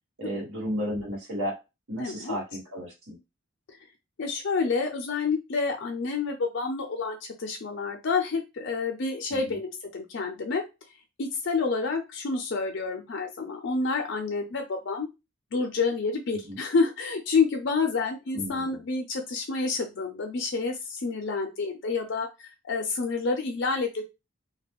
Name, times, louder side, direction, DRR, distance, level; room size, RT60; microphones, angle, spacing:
voice 1, 0.2-1.6 1.9-3.2 9.3-9.6 16.4-16.6 18.3-18.8, equal, 75° right, -4 dB, 1.3 m, -33 dB
voice 2, 2.0-2.4 4.2-10.6 11.2-15.1 15.5-24.0, left 4 dB, 55° left, 3 dB, 0.5 m, -28 dB
2.3 x 2.1 x 3.5 m, 0.25 s
head